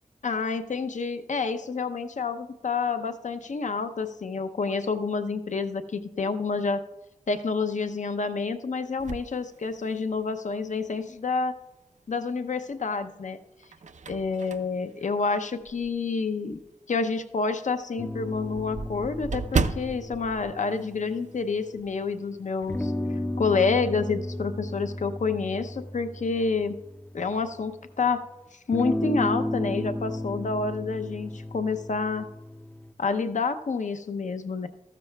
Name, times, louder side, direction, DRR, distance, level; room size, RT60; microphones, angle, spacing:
voice 1, 0.2-6.8 7.3-11.6 12.1-13.4 14.1-16.6 16.9-22.9 23.4-26.8 27.1-28.2 28.7-32.3 33.0-34.7, left 4 dB, 65° left, 10 dB, 0.6 m, -28 dB
sound 1, 9.0-10.3 10.9-11.0 12.4-12.9 13.4-16.1 16.5-16.6 17.0-17.1 17.4-17.5 17.7-21.5 21.8-22.0 22.3-22.9, right 4 dB, 65° right, 0.5 m, -34 dB
sound 2, 18.0-21.9 22.7-27.8 28.7-32.9, left 1 dB, 10° left, 0.4 m, -34 dB
14.0 x 12.5 x 2.3 m, 0.95 s
wide cardioid pair, 90°, 13 cm